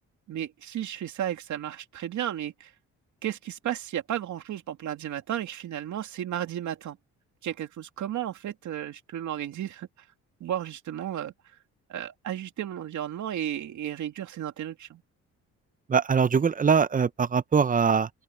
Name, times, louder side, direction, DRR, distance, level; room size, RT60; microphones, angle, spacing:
voice 1, 0.3-2.7 3.2-7.0 7.4-9.9 10.4-11.3 11.9-15.0, right 11 dB, 70° right, 2.8 m, -33 dB
voice 2, 15.9-18.1, right 6 dB, 25° right, 0.7 m, -22 dB
open air
cardioid pair, 90°, 30 cm